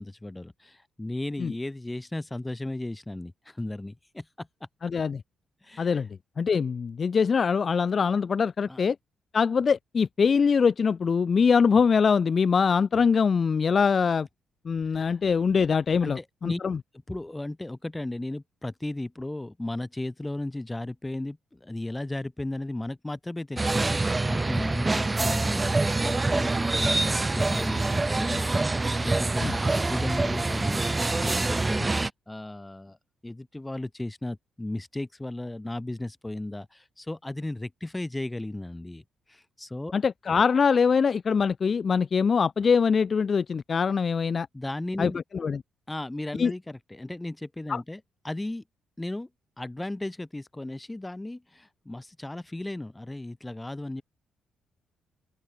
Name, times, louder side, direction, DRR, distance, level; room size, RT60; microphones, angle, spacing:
voice 1, 0.0-4.5 5.6-6.0 8.7-8.8 16.0-16.6 17.1-31.9 32.3-33.0 33.2-39.9 44.5-45.2 45.9-48.6 49.0-49.3 49.6-54.0, left 1 dB, 10° left, 4.0 m, -35 dB
voice 2, 4.8-5.2 5.8-6.1 6.4-9.0 9.3-14.3 14.6-16.8 29.4-29.5 39.9-44.5 45.0-45.6 46.4-46.5 47.7-47.8, left 6 dB, 45° left, 0.7 m, -23 dB
sound 1, 23.6-32.1, right 2 dB, 20° right, 1.5 m, -25 dB
open air
cardioid pair, 90°, 0 cm